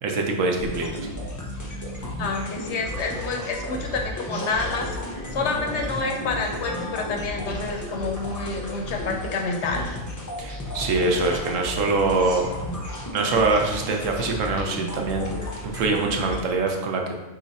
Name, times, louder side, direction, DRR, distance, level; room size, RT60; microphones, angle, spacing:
voice 1, 0.0-1.1 10.4-12.5 13.1-15.3 15.6-17.1, right 3 dB, 75° right, 2 dB, 1.0 m, -24 dB
sound 1, 0.6-16.4, left 1 dB, 30° left, 0.3 m, -33 dB
voice 2, 2.2-5.0 5.3-9.8, left 3 dB, 65° left, 2 dB, 0.8 m, -28 dB
4.8 x 2.5 x 4.0 m, 1.0 s
omnidirectional pair, 1.4 m